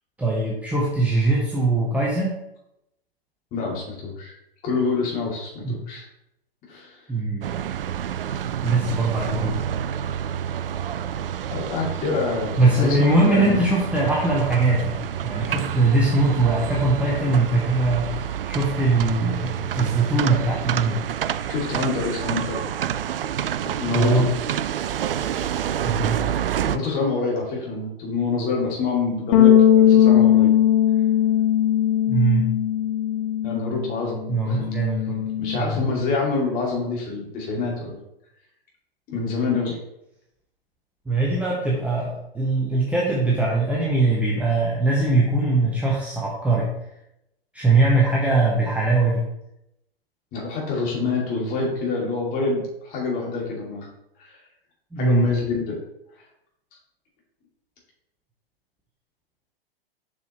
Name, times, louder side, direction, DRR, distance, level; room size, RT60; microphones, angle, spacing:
voice 1, 0.2-2.4 5.6-5.8 7.1-7.5 8.6-9.6 12.6-21.0 23.9-24.3 25.8-26.2 32.1-32.5 34.3-35.2 35.5-35.8 41.1-46.7 47.5-49.2 54.9-55.3, right 2 dB, 5° right, -4 dB, 0.9 m, -21 dB
voice 2, 3.5-4.3 4.6-6.1 6.7-7.0 11.5-13.0 13.2-13.6 21.5-22.6 23.8-24.2 26.7-30.5 33.4-34.2 34.5-34.6 35.4-38.0 39.1-39.8 50.3-53.9 54.2-54.4 55.0-55.7, left 4 dB, 30° left, -3 dB, 2.6 m, -26 dB
sound 1, 7.4-26.8, right 10 dB, 65° right, 0.4 m, -28 dB
sound 2, 29.3-33.9 34.2-35.6, left 10 dB, 45° left, 1.4 m, -18 dB
7.1 x 6.2 x 3.2 m, 0.83 s
figure-of-eight pair, 110°, 30 cm